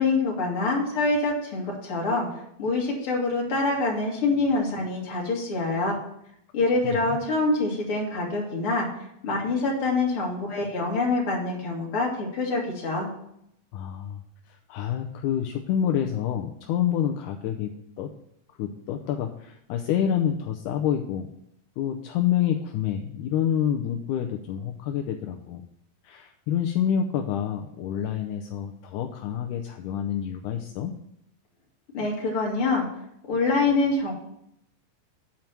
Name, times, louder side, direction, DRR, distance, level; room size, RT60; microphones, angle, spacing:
voice 1, 0.0-2.3 2.6-6.0 6.5-8.9 9.2-13.1 31.9-32.9 33.3-34.1, left 3 dB, 40° left, -2 dB, 2.7 m, -25 dB
voice 2, 6.8-7.2 13.7-14.2 14.5-18.1 18.6-21.3 21.8-25.6 26.0-30.9, left 9 dB, 80° left, 4 dB, 1.9 m, -28 dB
8.9 x 4.6 x 7.2 m, 0.76 s
omnidirectional pair, 4.1 m